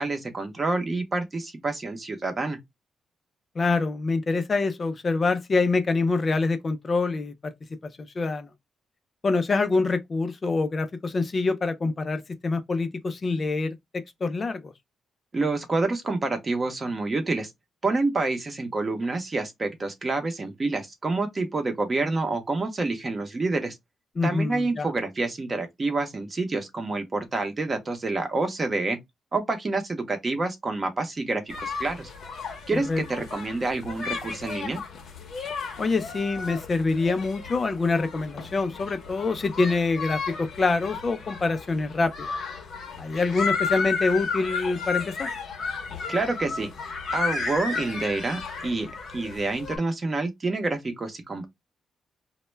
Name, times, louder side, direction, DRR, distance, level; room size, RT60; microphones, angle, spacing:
voice 1, 0.0-2.6 15.3-17.5 17.8-23.8 24.2-29.0 29.3-32.1 32.7-34.8 46.1-46.7 47.1-51.5, right 3 dB, 30° right, 0.6 m, -28 dB
voice 2, 3.6-7.5 7.8-8.5 9.2-14.7 24.2-24.9 32.7-33.0 35.8-42.3 43.0-45.3, left 3 dB, 30° left, 0.3 m, -25 dB
sound 1, 31.5-49.8, left 5 dB, 65° left, 0.7 m, -33 dB
2.1 x 2.1 x 3.1 m
cardioid pair, 125°, 0 cm